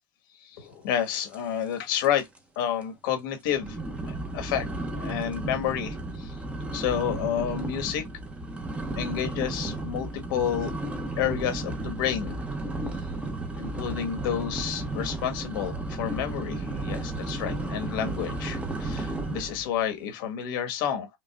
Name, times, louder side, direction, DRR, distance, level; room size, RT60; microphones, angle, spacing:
voice 1, 0.4-2.3 2.5-3.8 4.1-4.7 5.0-6.4 6.7-8.0 9.0-10.7 11.2-12.4 12.9-13.0 13.6-21.1, left 9 dB, 80° left, 1.5 m, -30 dB
sound 1, 1.3-1.7 2.0-2.4 2.8-2.9 3.5-19.6, right 2 dB, 10° right, 0.9 m, -33 dB
5.3 x 2.3 x 2.3 m
supercardioid pair, 125°, 11 cm